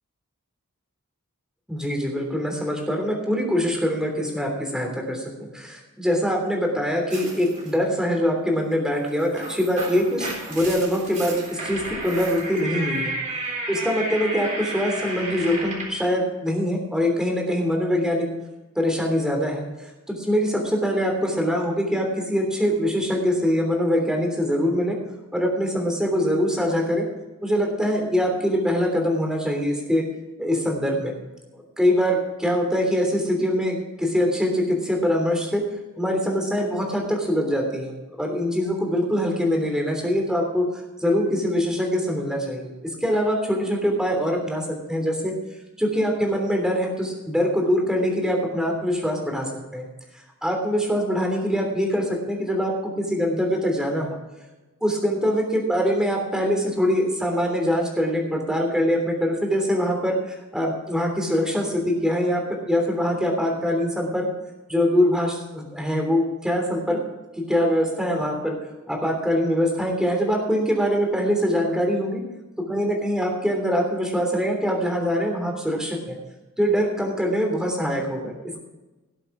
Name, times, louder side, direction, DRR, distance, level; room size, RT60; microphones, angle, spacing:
voice 1, 1.7-13.1 13.7-18.3 18.7-25.0 25.3-27.0 27.4-30.0 30.4-31.1 31.5-35.6 36.0-40.7 41.0-44.6 44.9-45.3 45.8-49.9 50.4-54.2 54.8-64.3 64.7-67.0 67.3-68.5 68.9-72.2 72.7-76.2 76.6-78.6, equal, 5° right, 1 dB, 3.1 m, -23 dB
sound 1, 7.1-7.7 9.1-16.0, right 2 dB, 35° right, 3.7 m, -32 dB
18.5 x 7.7 x 4.8 m, 1.1 s
head